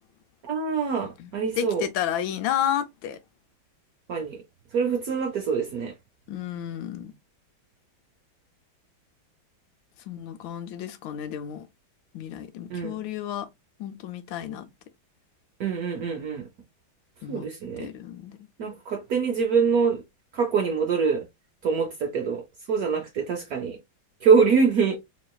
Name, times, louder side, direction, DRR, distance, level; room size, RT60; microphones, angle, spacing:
voice 1, 0.4-1.8 4.1-4.4 4.7-5.9 12.7-13.0 15.6-16.4 17.3-17.9 18.6-20.0 20.3-21.2 21.6-22.4 22.7-23.8 24.2-25.0, right 5 dB, 70° right, 0.9 m, -24 dB
voice 2, 1.6-3.2 6.3-7.1 10.1-11.6 12.1-13.5 13.8-14.7 17.2-17.5 17.8-18.4, left 10 dB, 75° left, 1.3 m, -31 dB
4.0 x 3.1 x 2.2 m
omnidirectional pair, 2.2 m